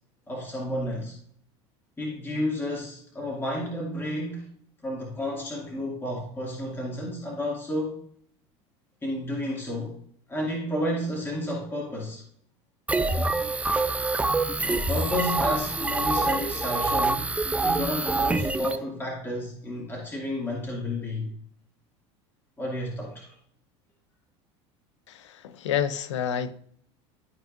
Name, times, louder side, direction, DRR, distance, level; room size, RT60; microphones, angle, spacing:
voice 1, 0.3-1.1 2.0-4.5 4.8-8.0 9.0-10.0 10.3-12.2 14.5-21.3 22.6-23.4, left 1 dB, 15° left, -2 dB, 2.1 m, -31 dB
sound 1, 12.9-18.8, right 3 dB, 10° right, 0.5 m, -26 dB
voice 2, 25.1-26.5, left 9 dB, 90° left, 14 dB, 0.6 m, -29 dB
12.5 x 4.6 x 2.5 m, 0.65 s
supercardioid pair, 95°, 15 cm